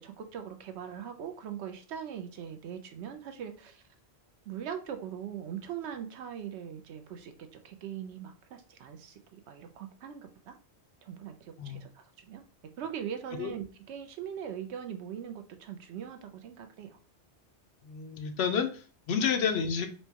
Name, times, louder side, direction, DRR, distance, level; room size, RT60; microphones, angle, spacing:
voice 1, 0.0-3.8 4.5-10.6 11.0-12.4 12.8-17.0 19.1-19.2, right 8 dB, 75° right, 7 dB, 0.8 m, -41 dB
voice 2, 17.8-19.9, left 7 dB, 70° left, 5 dB, 0.8 m, -30 dB
4.4 x 2.2 x 2.8 m, 0.38 s
omnidirectional pair, 1.2 m